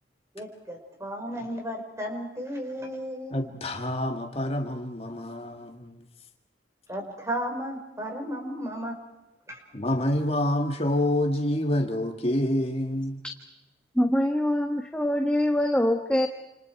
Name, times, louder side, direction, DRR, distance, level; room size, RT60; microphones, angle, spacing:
voice 1, 0.3-3.4 6.9-9.0 9.5-9.6, equal, 15° right, 3 dB, 4.9 m, -34 dB
voice 2, 3.3-6.1 9.7-13.2, left 1 dB, 35° left, 4 dB, 1.9 m, -27 dB
voice 3, 13.9-16.3, left 1 dB, 5° left, 4 dB, 1.4 m, -24 dB
29.5 x 28.0 x 4.7 m, 0.97 s
head